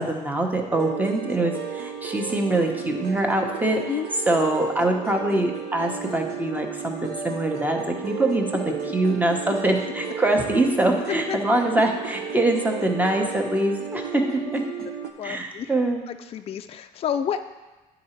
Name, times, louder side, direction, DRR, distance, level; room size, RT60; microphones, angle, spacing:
voice 1, 0.0-3.8 4.3-14.2 14.5-14.6 15.2-16.0, right 2 dB, 10° right, 2 dB, 0.9 m, -24 dB
sound 1, 0.7-15.1, right 6 dB, 75° right, 0.7 m, -33 dB
voice 2, 15.2-15.7 16.1-17.4, left 8 dB, 35° left, 8 dB, 0.4 m, -29 dB
9.4 x 3.9 x 4.4 m, 1.1 s
cardioid pair, 110°, 17 cm